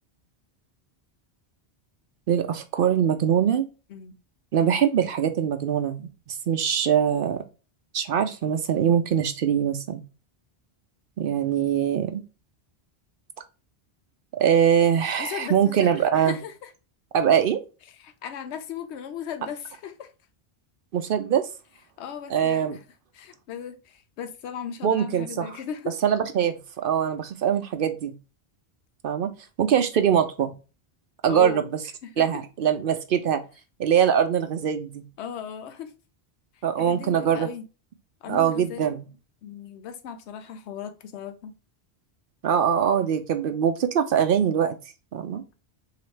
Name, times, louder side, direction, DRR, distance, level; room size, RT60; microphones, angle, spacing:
voice 1, 2.3-3.7 4.5-7.4 7.9-10.0 11.2-12.2 14.4-16.4 17.1-17.6 20.9-21.5 22.3-22.8 24.8-25.5 26.0-26.6 26.8-28.1 29.0-29.3 29.6-30.5 31.2-31.6 32.2-33.4 33.8-35.0 36.6-37.5 38.3-39.0 42.4-44.7 45.1-45.4, right 8 dB, 65° right, 0.7 m, -22 dB
voice 2, 15.2-16.7 17.9-20.1 22.0-22.8 23.1-26.0 31.3-31.6 32.0-32.4 35.2-35.9 36.5-37.7 38.2-38.9 39.4-41.5, left 8 dB, 85° left, 0.8 m, -37 dB
4.1 x 2.8 x 3.1 m
omnidirectional pair, 1.1 m